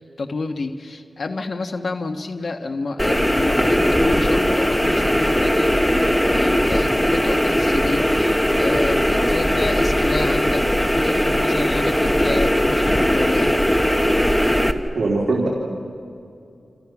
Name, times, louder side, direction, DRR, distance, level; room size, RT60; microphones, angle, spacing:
voice 1, 0.2-13.5, left 3 dB, 60° left, 4 dB, 1.4 m, -29 dB
sound 1, 3.0-14.7, equal, 10° left, 1.4 m, -19 dB
voice 2, 15.0-15.5, right 3 dB, 65° right, -4 dB, 3.5 m, -20 dB
29.0 x 28.0 x 6.1 m, 2.5 s
wide cardioid pair, 100°, 0 cm